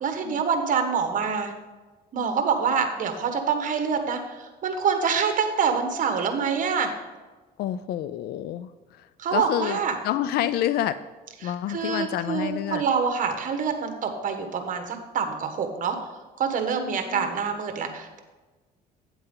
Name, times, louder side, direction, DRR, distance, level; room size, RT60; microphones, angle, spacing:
voice 1, 0.0-1.5 2.1-6.9 9.2-9.9 11.4-16.0 16.4-18.2, right 6 dB, 50° right, 6 dB, 1.3 m, -26 dB
voice 2, 7.6-9.8 10.0-11.0 11.4-12.8 16.8-17.3, left 12 dB, 70° left, 13 dB, 0.4 m, -29 dB
8.9 x 7.9 x 3.9 m, 1.2 s
cardioid pair, 110°, 17 cm